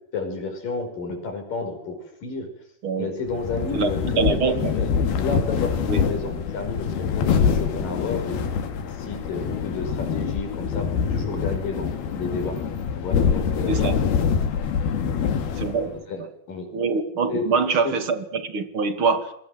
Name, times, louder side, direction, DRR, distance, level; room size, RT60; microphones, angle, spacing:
voice 1, 0.1-2.5 3.0-4.0 4.3-4.9 5.2-8.4 8.8-12.6 12.9-14.0 15.8-16.7 17.3-17.5 17.8-17.9, left 3 dB, 60° left, 6 dB, 6.8 m, -31 dB
sound 1, 3.3-16.0, left 6 dB, 90° left, 4.2 m, -25 dB
voice 2, 4.2-4.7 5.9-6.0 13.7-14.0 15.6-16.0 16.7-19.3, right 4 dB, 40° right, 10 dB, 2.6 m, -24 dB
28.0 x 22.0 x 7.9 m, 0.70 s
omnidirectional pair, 4.3 m